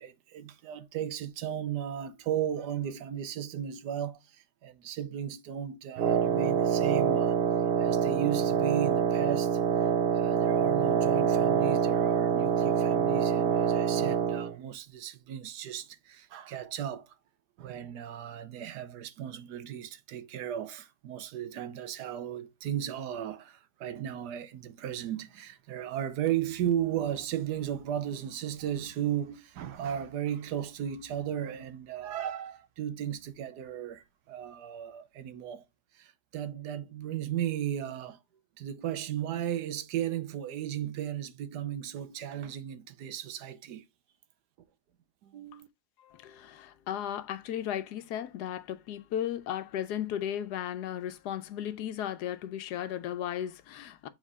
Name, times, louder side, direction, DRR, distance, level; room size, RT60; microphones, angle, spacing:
voice 1, 0.0-7.4 7.8-9.6 10.1-17.2 17.6-35.6 35.9-38.2 38.6-43.8 45.2-45.7, right 10 dB, 85° right, 1.3 m, -35 dB
Wind instrument woodwind instrument, 6.0-14.5, right 7 dB, 70° right, 0.5 m, -26 dB
voice 2, 46.0-54.1, left 10 dB, 85° left, 1.2 m, -35 dB
7.4 x 3.8 x 3.6 m
omnidirectional pair, 1.7 m